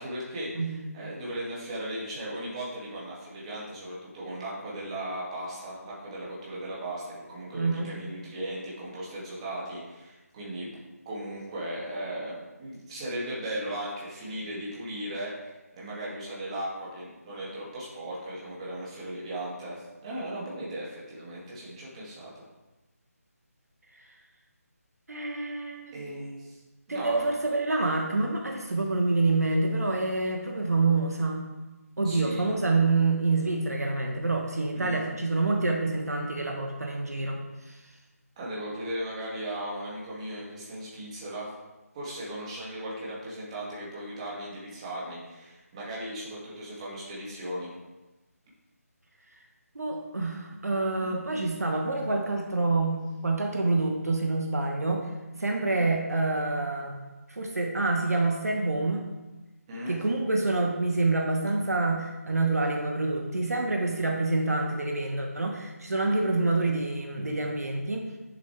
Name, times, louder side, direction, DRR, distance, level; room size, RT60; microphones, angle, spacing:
voice 1, 0.0-10.8 11.0-22.4 25.9-26.6 26.9-27.3 32.0-32.5 34.7-35.0 38.4-41.5 41.9-47.7 51.0-51.1 59.7-60.0, right 1 dB, 20° right, -6 dB, 2.5 m, -37 dB
voice 2, 7.5-7.9 25.1-26.1 26.9-31.5 32.0-37.4 37.7-37.8 49.7-55.0 55.4-57.0 57.3-59.0 59.9-68.1, right 3 dB, 75° right, 1 dB, 1.5 m, -27 dB
8.5 x 7.6 x 3.5 m, 1.1 s
figure-of-eight pair, 160°, 9 cm